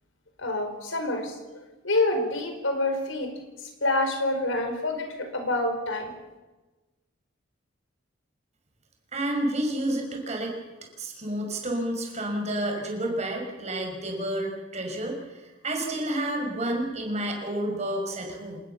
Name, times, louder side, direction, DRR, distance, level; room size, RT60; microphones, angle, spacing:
voice 1, 0.4-1.3 1.8-3.3 3.8-6.1, left 2 dB, 80° left, 6 dB, 5.0 m, -27 dB
voice 2, 9.1-10.5 11.0-18.6, right 1 dB, 35° right, 2 dB, 6.0 m, -30 dB
27.0 x 20.5 x 7.1 m, 1.2 s
head